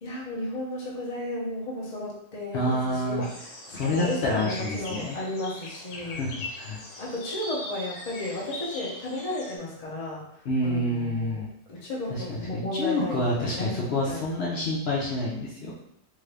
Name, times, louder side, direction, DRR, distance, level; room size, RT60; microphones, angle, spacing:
voice 1, 0.0-3.5 3.8-6.2 7.0-10.2 10.6-14.4, left 1 dB, 35° left, -4 dB, 0.9 m, -34 dB
voice 2, 2.5-3.2 3.7-5.2 5.9-6.3 6.6-6.8 10.4-11.5 12.1-12.2 12.5-15.7, left 1 dB, 60° left, -5 dB, 0.9 m, -28 dB
sound 1, 3.2-9.6, left 2 dB, 90° left, 1.2 m, -40 dB
3.7 x 2.5 x 3.3 m, 0.76 s
omnidirectional pair, 1.2 m